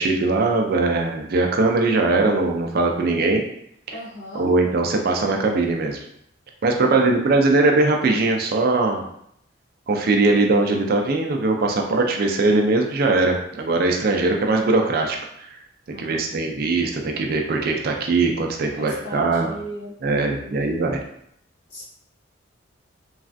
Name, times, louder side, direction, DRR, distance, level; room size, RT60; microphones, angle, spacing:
voice 1, 0.0-3.4 3.9-4.0 4.3-6.0 6.6-9.0 9.9-15.6 15.9-19.5 20.0-21.0, right 3 dB, 50° right, 2 dB, 0.4 m, -21 dB
voice 2, 3.9-4.5 6.8-7.2 15.9-16.3 18.7-20.7 21.7-21.8, equal, 60° left, -6 dB, 1.1 m, -37 dB
3.2 x 2.4 x 2.5 m, 0.72 s
head